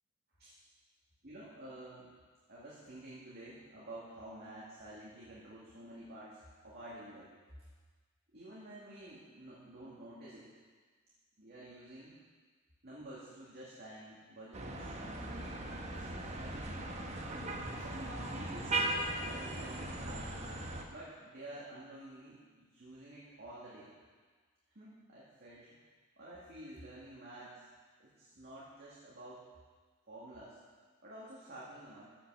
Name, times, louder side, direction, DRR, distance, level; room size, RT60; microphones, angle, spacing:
voice 1, 1.2-2.1 2.5-7.3 8.3-10.5 11.4-12.2 12.8-15.6 15.9-16.8 17.6-20.3 20.9-23.9 24.7-25.7 26.2-27.7 28.0-29.5 30.1-30.6 31.0-32.0, right 1 dB, 50° right, -8 dB, 2.3 m, -50 dB
sound 1, 14.5-20.8, right 2 dB, 30° right, 1.1 m, -38 dB
14.5 x 5.8 x 6.3 m, 1.5 s
head